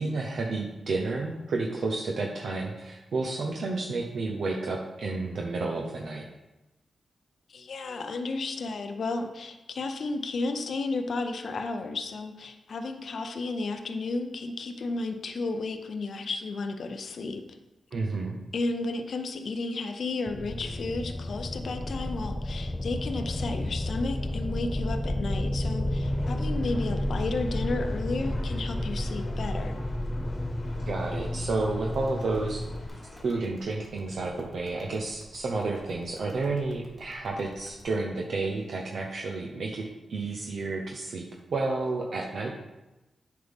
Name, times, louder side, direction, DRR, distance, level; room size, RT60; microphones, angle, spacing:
voice 1, 0.0-6.2 17.9-18.4 30.9-32.6 33.2-41.2 41.5-42.5, right 3 dB, 70° right, 0 dB, 0.7 m, -31 dB
voice 2, 7.5-17.4 18.5-29.8, left 3 dB, 65° left, 6 dB, 0.5 m, -33 dB
sound 1, 20.3-32.9, left 1 dB, 15° left, 0.4 m, -31 dB
sound 2, 26.0-33.3, left 2 dB, 45° left, 1.1 m, -47 dB
sound 3, 31.9-37.8, equal, 10° right, 1.8 m, -53 dB
7.8 x 5.3 x 3.5 m, 1.0 s
cardioid pair, 85°, 0 cm